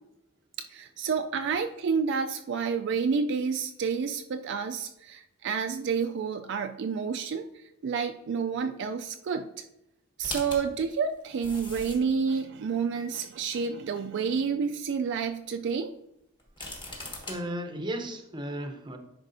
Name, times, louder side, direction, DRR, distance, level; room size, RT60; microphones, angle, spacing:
voice 1, 0.7-7.5 7.8-9.5 10.2-15.9, right 5 dB, 60° right, 6 dB, 0.3 m, -29 dB
sound 1, 10.2-12.2 12.9-13.0 16.4-17.4, left 2 dB, 25° left, 1.3 m, -39 dB
voice 2, 16.7-19.0, right 1 dB, 20° right, 6 dB, 0.6 m, -36 dB
10.5 x 4.5 x 2.7 m, 0.82 s
head